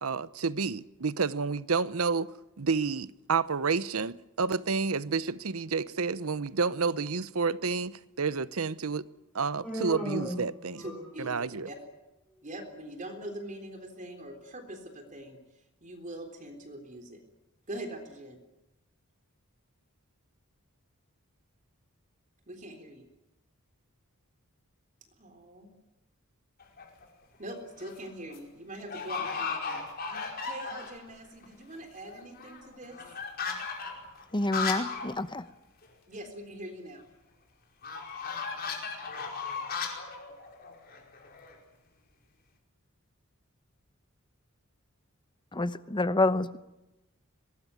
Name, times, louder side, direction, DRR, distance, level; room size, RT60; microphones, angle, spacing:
voice 1, 0.0-2.3 2.6-9.0 9.3-10.8 11.2-11.7, right 4 dB, 75° right, 0.8 m, -30 dB
Human voice, 9.6-11.3, equal, 5° left, 6.8 m, -36 dB
voice 2, 10.8-11.8 12.4-15.4 15.8-17.2 17.7-18.4 22.5-23.1 25.2-25.7 27.4-29.9 30.4-33.0 36.1-37.1, right 1 dB, 35° right, 3.6 m, -43 dB
sound 1, 26.6-27.0 27.6-28.0 28.3-28.4 28.9-31.1 31.4-31.5 31.7-35.1 35.4-35.5 35.8-35.9 37.8-41.6, left 5 dB, 45° left, 5.1 m, -36 dB
voice 3, 34.3-35.4 45.5-46.6, left 2 dB, 20° left, 0.9 m, -28 dB
23.5 x 20.5 x 9.6 m
head